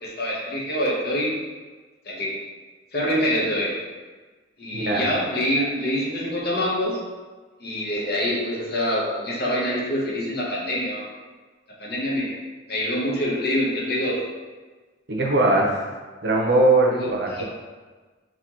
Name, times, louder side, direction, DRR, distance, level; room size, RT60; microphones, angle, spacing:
voice 1, 0.0-1.3 2.0-2.4 2.9-3.8 4.6-7.1 7.6-11.0 11.8-12.4 12.7-14.2 16.9-17.4, equal, 55° left, -4 dB, 0.8 m, -25 dB
voice 2, 15.1-15.8 16.2-17.4, right 2 dB, 60° right, -2 dB, 0.7 m, -20 dB
4.1 x 2.8 x 2.9 m, 1.3 s
head